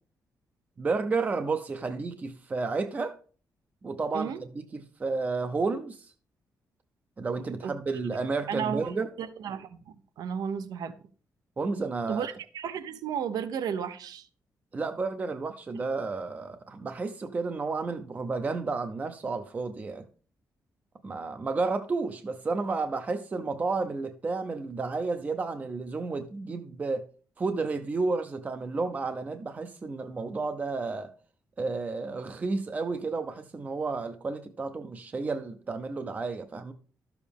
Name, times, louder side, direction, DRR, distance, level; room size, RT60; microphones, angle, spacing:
voice 1, 0.8-3.2 3.8-6.1 7.2-9.1 11.6-12.3 14.7-20.1 21.0-27.1 27.4-31.1 31.6-36.7, right 4 dB, 25° right, 0.5 m, -31 dB
voice 2, 8.5-8.9 9.2-10.9 12.1-14.3, right 7 dB, 85° right, 0.8 m, -33 dB
12.5 x 7.0 x 3.5 m
wide cardioid pair, 170°, 7 cm